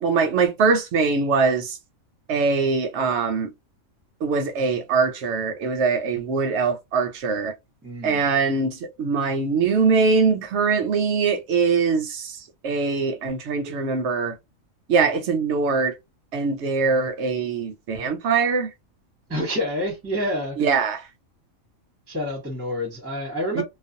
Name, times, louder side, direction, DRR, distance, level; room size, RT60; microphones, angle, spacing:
voice 1, 0.0-1.8 2.3-3.5 4.2-7.5 8.0-14.4 14.9-16.0 16.3-18.7 20.6-21.0 23.6-23.7, right 4 dB, 65° right, 0.8 m, -22 dB
voice 2, 7.8-8.3 19.3-20.7 22.1-23.6, left 1 dB, 15° right, 0.7 m, -28 dB
2.4 x 2.2 x 2.5 m
omnidirectional pair, 1.4 m